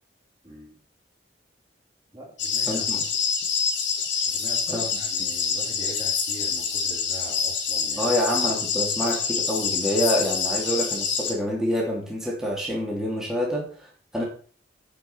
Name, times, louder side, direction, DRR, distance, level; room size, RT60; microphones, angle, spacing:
voice 1, 0.4-0.8 2.1-3.0 4.2-8.1, right 1 dB, 25° right, -3 dB, 2.9 m, -41 dB
sound 1, 2.4-11.3, left 6 dB, 80° left, 3.6 m, -26 dB
voice 2, 2.7-3.0 4.7-4.8 5.2-5.3 8.0-14.2, equal, 5° right, -4 dB, 3.1 m, -27 dB
10.0 x 6.0 x 5.9 m, 0.42 s
head